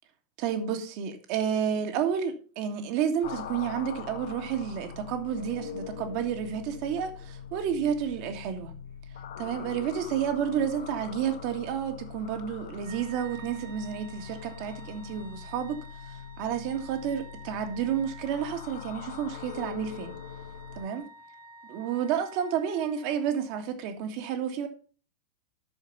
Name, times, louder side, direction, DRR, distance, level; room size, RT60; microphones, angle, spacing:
voice 1, 0.4-8.7 9.4-15.8 16.4-20.1 20.8-21.1 21.7-24.7, right 8 dB, 45° right, 1.8 m, -30 dB
sound 1, 3.2-20.9, left 7 dB, 60° left, 1.0 m, -42 dB
Wind instrument woodwind instrument, 12.8-23.6, right 1 dB, 70° right, 3.0 m, -51 dB
8.7 x 6.5 x 5.5 m
figure-of-eight pair, 90°, 0 cm